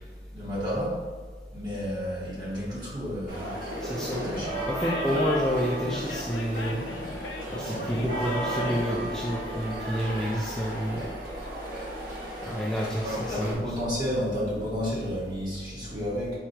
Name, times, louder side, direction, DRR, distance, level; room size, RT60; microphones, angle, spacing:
voice 1, 0.3-1.0 1.5-3.6 4.1-4.6 12.8-16.4, equal, 25° right, -7 dB, 1.5 m, -31 dB
sound 1, 3.3-13.5, right 1 dB, 55° right, 1.2 m, -35 dB
voice 2, 3.8-4.2 4.7-6.9 7.5-11.1 12.4-13.8, equal, 5° left, -5 dB, 0.4 m, -29 dB
Animal, 3.9-9.0, left 2 dB, 75° left, 0.5 m, -36 dB
4.7 x 4.3 x 2.2 m, 1.5 s
head